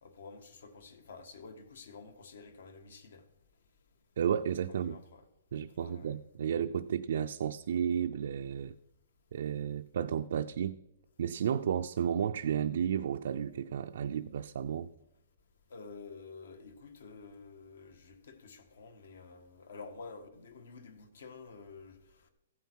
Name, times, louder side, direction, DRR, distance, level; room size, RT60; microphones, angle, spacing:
voice 1, 0.0-3.2 4.7-5.2 5.8-6.1 15.7-22.0, left 4 dB, 65° left, 1.6 m, -50 dB
voice 2, 4.2-5.0 5.5-8.7 9.3-10.8 11.2-14.9, right 8 dB, 55° right, 0.4 m, -32 dB
15.0 x 9.2 x 4.6 m
hypercardioid pair, 175°, 0 cm